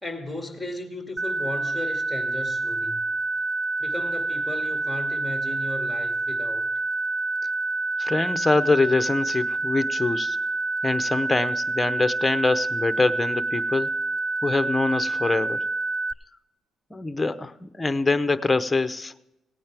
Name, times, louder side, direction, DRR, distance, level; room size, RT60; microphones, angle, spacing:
voice 1, 0.0-3.0 3.8-6.7, left 1 dB, ahead, 3 dB, 2.3 m, -35 dB
sound 1, 1.2-16.1, right 3 dB, 25° right, 0.5 m, -27 dB
voice 2, 8.0-10.4 10.8-13.9 14.4-15.7 16.9-19.1, left 3 dB, 15° left, 11 dB, 0.8 m, -24 dB
18.0 x 9.3 x 3.4 m, 0.95 s
cardioid pair, 90°, 0 cm